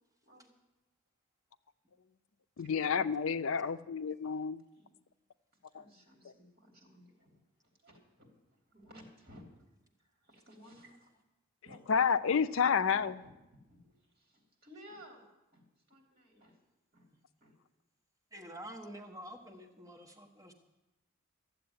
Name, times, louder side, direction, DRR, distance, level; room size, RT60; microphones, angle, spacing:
voice 1, 2.6-4.6 5.7-5.8 6.2-6.3 11.9-13.2, left 6 dB, 65° left, 13 dB, 0.5 m, -30 dB
voice 2, 5.7-7.4 7.8-9.5 9.8-11.2 11.6-11.8 12.8-16.6 16.9-17.1 17.4-17.5, equal, 45° right, 1 dB, 3.3 m, -57 dB
voice 3, 18.3-20.5, equal, 15° right, 1 dB, 1.3 m, -48 dB
13.5 x 7.7 x 9.7 m, 0.98 s
head